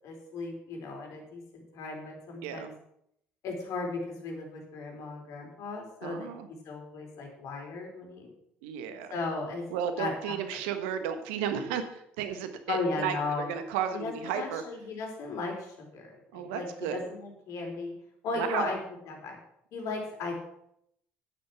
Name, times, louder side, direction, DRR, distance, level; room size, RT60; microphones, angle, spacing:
voice 1, 0.0-2.7 3.4-8.3 9.1-9.6 10.0-10.6 12.7-13.5 13.9-17.9 18.2-18.8 19.1-19.4 19.7-20.3, left 3 dB, 60° left, 2 dB, 4.2 m, -36 dB
voice 2, 6.0-6.5 8.6-9.2 9.7-14.6 16.3-17.1 18.3-18.7, right 8 dB, 75° right, 9 dB, 1.4 m, -33 dB
10.5 x 9.6 x 6.0 m, 0.74 s
hypercardioid pair, 55°, 6 cm